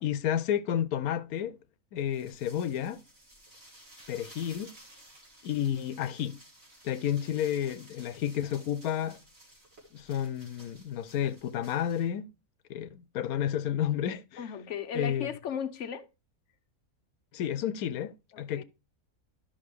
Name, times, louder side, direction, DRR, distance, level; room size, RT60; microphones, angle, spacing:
voice 1, 0.0-1.6 1.9-3.0 4.1-4.7 5.4-6.4 6.8-9.2 9.9-12.3 12.7-14.5 14.9-15.3 17.3-18.6, left 10 dB, 90° left, 1.1 m, -31 dB
sound 1, 2.0-12.1, right 1 dB, 45° right, 3.3 m, -55 dB
voice 2, 14.4-16.1 18.3-18.6, left 7 dB, 60° left, 1.0 m, -36 dB
13.0 x 5.8 x 3.4 m
omnidirectional pair, 1.5 m